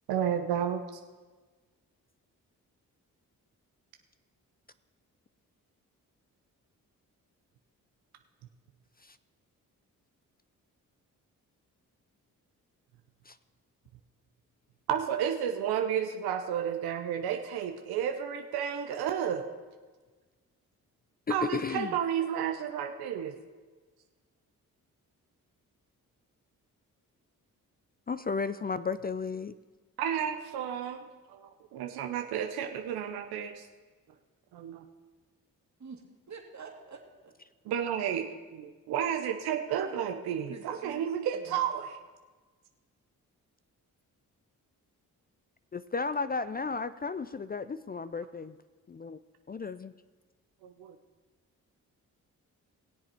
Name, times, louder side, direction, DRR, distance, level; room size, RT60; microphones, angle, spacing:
voice 1, 0.1-1.0 14.9-19.5 21.3-23.3 30.0-33.7 34.5-34.8 37.6-41.9 50.6-51.0, right 9 dB, 90° right, 6 dB, 0.7 m, -32 dB
voice 2, 21.3-21.9 28.1-29.5 45.7-48.5 48.9-49.2 49.5-49.9, left 4 dB, 25° left, 14 dB, 0.4 m, -34 dB
voice 3, 35.8-37.3 39.8-41.1 41.3-41.6, right 5 dB, 50° right, 2 dB, 2.4 m, -48 dB
19.5 x 7.4 x 4.4 m, 1.4 s
supercardioid pair, 50°, 37 cm